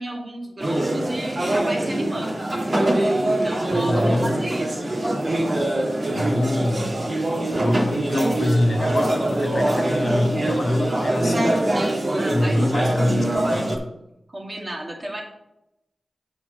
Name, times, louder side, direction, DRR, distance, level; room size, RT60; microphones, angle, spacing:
voice 1, 0.0-2.4 3.2-3.9 4.2-4.8 12.2-12.7 14.3-15.2, right 1 dB, 35° right, 0 dB, 2.2 m, -32 dB
sound 1, 0.6-13.8, right 1 dB, 50° right, 1.9 m, -23 dB
voice 2, 3.7-4.3 6.1-7.0 7.5-12.0 12.3-13.2 13.5-13.7, left 1 dB, 65° left, 3 dB, 1.2 m, -24 dB
7.6 x 4.4 x 6.5 m, 0.88 s
cardioid pair, 45°, 0 cm